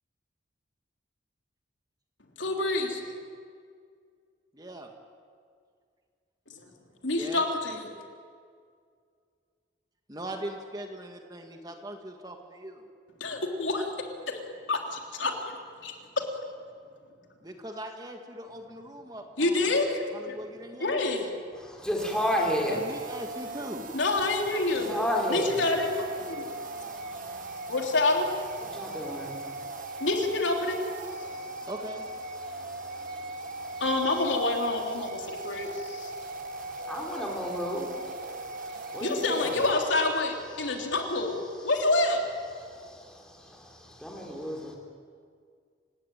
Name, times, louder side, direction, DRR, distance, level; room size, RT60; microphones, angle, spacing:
voice 1, 2.4-3.0 7.0-7.9 13.2-14.4 14.7-16.2 19.4-20.3 20.8-21.2 23.9-24.9 25.3-25.9 26.2-26.4 27.7-28.3 30.0-30.8 33.8-36.1 39.0-41.4 41.6-42.3, left 2 dB, 75° left, 2 dB, 3.4 m, -27 dB
voice 2, 4.5-4.9 7.1-7.4 10.1-12.9 17.4-19.7 20.1-21.0 22.7-23.9 31.7-32.1, right 1 dB, 20° right, 3 dB, 1.9 m, -40 dB
voice 3, 21.5-44.8, equal, 5° left, -1 dB, 4.4 m, -37 dB
sound 1, 22.0-40.2, right 2 dB, 45° right, 0.9 m, -39 dB
27.5 x 17.5 x 9.3 m, 2.1 s
head